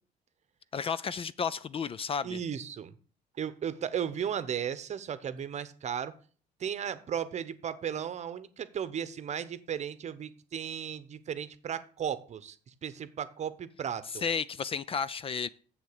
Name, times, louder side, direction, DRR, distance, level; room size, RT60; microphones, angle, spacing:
voice 1, 0.7-2.4 14.2-15.5, left 6 dB, 35° left, 0.4 m, -32 dB
voice 2, 2.2-2.9 3.4-6.1 6.6-14.2, right 8 dB, 45° right, 0.9 m, -35 dB
7.7 x 6.7 x 6.6 m
cardioid pair, 110°, 17 cm